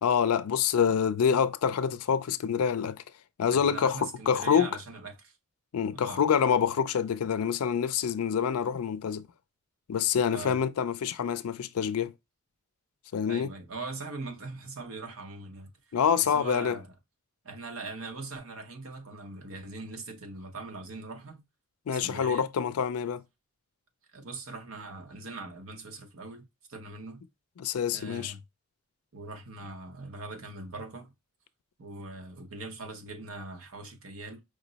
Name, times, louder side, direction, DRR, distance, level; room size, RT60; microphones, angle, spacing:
voice 1, 0.0-3.0 3.4-4.7 5.7-9.2 9.9-12.1 13.1-13.5 15.9-16.8 21.9-23.2 27.6-28.3, left 7 dB, 85° left, 0.4 m, -26 dB
voice 2, 3.5-5.4 5.9-6.2 10.3-10.6 13.3-16.9 17.4-21.4 21.9-22.5 24.1-27.2 27.9-28.4 29.1-31.1 31.8-34.4, right 3 dB, 70° right, 0.9 m, -41 dB
5.0 x 2.0 x 3.9 m
head